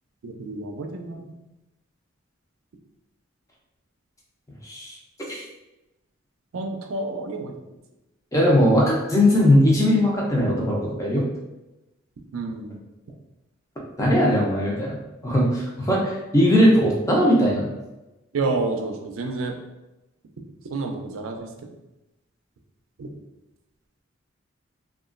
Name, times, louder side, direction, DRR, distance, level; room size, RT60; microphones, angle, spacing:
voice 1, 0.2-1.2 6.5-7.5 12.3-12.8 18.3-19.6 20.7-21.5 23.0-23.1, right 3 dB, 80° right, 4 dB, 0.4 m, -29 dB
voice 2, 4.6-4.9 8.3-11.2 14.0-15.0 15.2-17.7, equal, 15° left, -4 dB, 0.5 m, -19 dB
2.9 x 2.4 x 2.4 m, 0.99 s
head